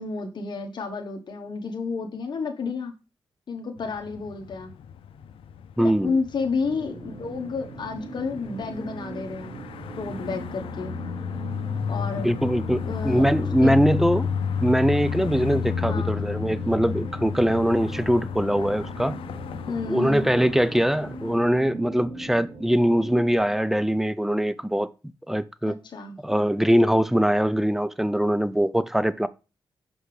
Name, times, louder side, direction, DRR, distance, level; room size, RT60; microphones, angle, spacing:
voice 1, 0.0-2.9 3.5-4.7 6.0-9.6 10.0-10.9 11.9-12.3 12.7-13.3 13.6-13.7 15.9-16.2 19.7-20.3 25.7-26.2, left 4 dB, 55° left, 1.2 m, -31 dB
sound 1, 3.8-21.4, left 7 dB, 85° left, 0.5 m, -32 dB
voice 2, 5.8-6.2 12.2-14.3 14.6-19.2 19.9-24.9 25.3-25.8 26.2-29.3, equal, 5° right, 0.5 m, -22 dB
sound 2, 6.6-23.4, right 3 dB, 55° right, 1.5 m, -40 dB
5.8 x 5.7 x 3.2 m
cardioid pair, 70°, 9 cm